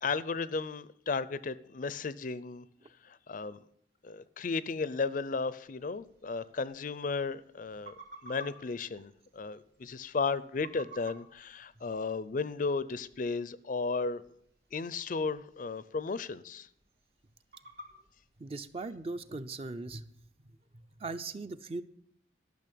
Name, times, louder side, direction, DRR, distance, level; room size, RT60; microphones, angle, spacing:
voice 1, 0.0-2.6 3.0-3.6 4.0-7.9 8.2-14.2 14.7-16.7, left 4 dB, 45° left, 0.5 m, -34 dB
sound 1, 5.6-19.1, right 2 dB, 60° right, 2.6 m, -56 dB
voice 2, 18.4-20.1 21.0-21.8, right 3 dB, 30° right, 0.6 m, -39 dB
12.5 x 6.3 x 8.5 m
head